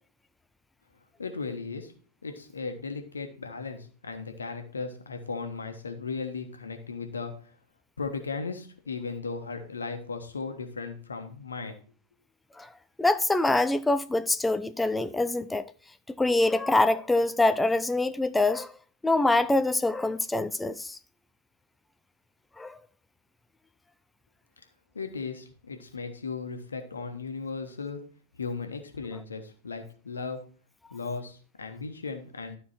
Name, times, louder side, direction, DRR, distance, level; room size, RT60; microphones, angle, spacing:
voice 1, 1.2-1.9 2.2-7.5 8.0-11.8 24.9-28.0 28.3-30.4 30.9-32.6, left 4 dB, 75° left, 1.3 m, -36 dB
voice 2, 13.0-15.6 16.2-18.7 19.0-21.0 22.6-22.8, left 2 dB, 5° left, 0.4 m, -25 dB
12.0 x 4.6 x 4.4 m
figure-of-eight pair, 90°, 0 cm